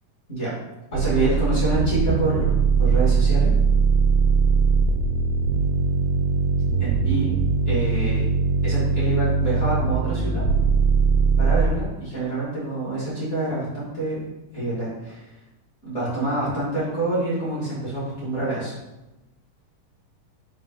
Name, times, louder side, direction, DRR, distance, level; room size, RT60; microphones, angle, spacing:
voice 1, 0.9-3.5 6.8-7.3 7.7-8.2 8.6-10.4 11.4-14.2 14.5-15.2 15.8-18.7, right 2 dB, 25° left, -8 dB, 1.8 m, -26 dB
sound 1, 0.9-11.7, right 5 dB, 85° right, 2.2 m, -21 dB
6.4 x 5.1 x 3.8 m, 0.98 s
omnidirectional pair, 5.0 m